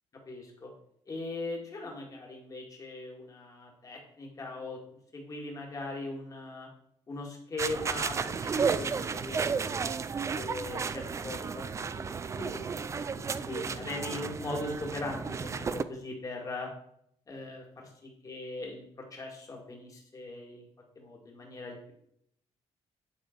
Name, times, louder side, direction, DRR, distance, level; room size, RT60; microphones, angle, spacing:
voice 1, 0.3-0.7 1.1-4.8 5.1-6.7 7.1-9.8 10.1-16.7 17.3-20.7 21.0-21.9, left 2 dB, 30° left, 1 dB, 2.0 m, -40 dB
sound 1, 7.6-15.8, right 5 dB, 25° right, 0.3 m, -33 dB
9.6 x 3.9 x 4.4 m, 0.71 s
cardioid pair, 125°, 12 cm